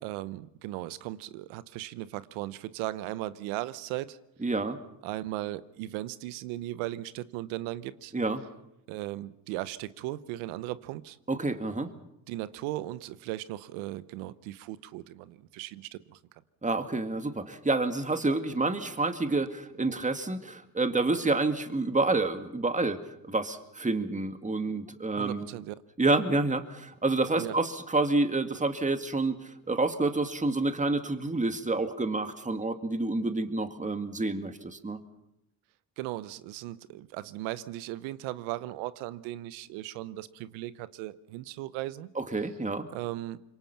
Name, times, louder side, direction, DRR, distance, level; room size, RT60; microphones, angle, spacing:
voice 1, 0.0-4.2 5.0-8.1 8.9-11.2 12.3-16.4 25.2-25.7 27.3-27.6 36.0-42.1 42.9-43.4, right 16 dB, 90° right, 0.9 m, -37 dB
voice 2, 4.4-4.8 8.1-8.4 11.3-11.9 16.6-25.5 26.0-35.0 42.2-42.9, right 2 dB, 15° right, 2.1 m, -28 dB
26.0 x 23.0 x 5.8 m
supercardioid pair, 70°, 45 cm